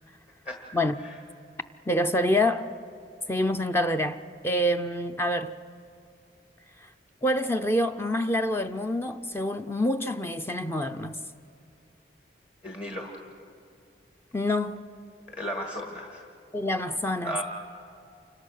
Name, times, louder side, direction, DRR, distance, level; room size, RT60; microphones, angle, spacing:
voice 1, 1.9-2.7 3.3-5.5 7.2-11.2 14.3-14.8 16.5-17.4, left 1 dB, 15° left, 0.5 m, -26 dB
voice 2, 12.6-13.2 15.3-16.3 17.2-17.4, equal, 35° left, 1.7 m, -35 dB
29.0 x 25.5 x 6.5 m
head